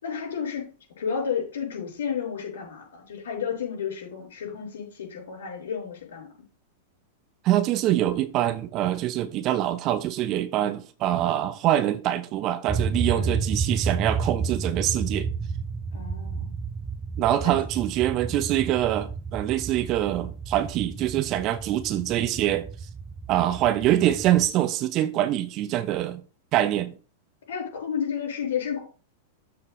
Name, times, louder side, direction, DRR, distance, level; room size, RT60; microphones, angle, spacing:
voice 1, 0.0-6.3 13.1-13.4 15.9-16.5 17.4-17.5 18.3-18.6 27.5-28.8, left 7 dB, 65° left, 5.1 m, -32 dB
voice 2, 7.4-15.3 17.2-22.7 23.3-26.2 26.5-26.9, right 13 dB, 40° right, 0.9 m, -24 dB
sound 1, 12.7-24.5, right 5 dB, 15° right, 0.5 m, -31 dB
13.0 x 4.6 x 3.2 m
figure-of-eight pair, 95°, 0 cm